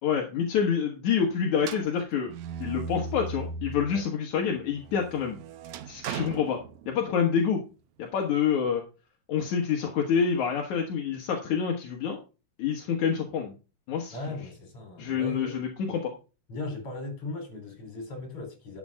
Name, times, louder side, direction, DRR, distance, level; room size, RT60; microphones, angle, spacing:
voice 1, 0.0-2.3 2.6-5.4 5.9-7.6 8.0-8.8 9.3-12.2 12.6-13.5 13.9-14.2 15.0-16.1, left 7 dB, 75° left, 2.9 m, -27 dB
sound 1, 1.6-4.0 4.4-7.3, right 5 dB, 75° right, 2.2 m, -38 dB
voice 2, 14.1-15.5 16.5-18.8, left 2 dB, 50° left, 4.8 m, -38 dB
12.0 x 7.9 x 3.7 m
omnidirectional pair, 3.4 m